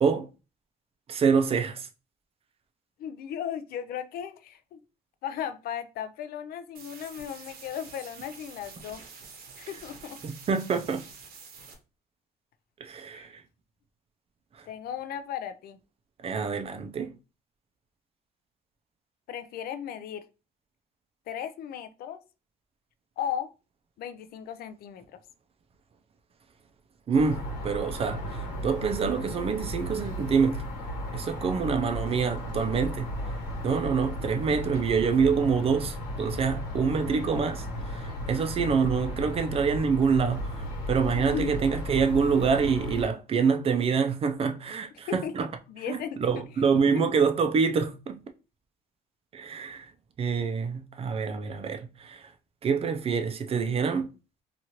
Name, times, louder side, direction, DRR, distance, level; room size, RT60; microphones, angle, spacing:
voice 1, 1.1-1.9 10.2-11.0 12.8-13.4 16.2-17.1 27.1-30.6 31.1-33.1 33.6-45.5 45.9-48.2 49.3-49.9 50.2-52.3 52.6-54.1, right 5 dB, 35° right, 0.4 m, -26 dB
voice 2, 3.0-4.8 5.2-9.0 9.6-10.2 13.1-13.3 14.7-15.8 19.3-20.2 21.3-22.2 23.2-23.5 24.0-25.1 41.2-41.6 45.1-45.3 45.7-46.2 46.9-47.0, left 9 dB, 65° left, 0.4 m, -36 dB
sound 1, 6.7-11.7, right 5 dB, 65° right, 0.8 m, -47 dB
sound 2, 27.1-43.1, equal, 80° left, 1.3 m, -35 dB
2.9 x 2.4 x 2.8 m
cardioid pair, 110°, 17 cm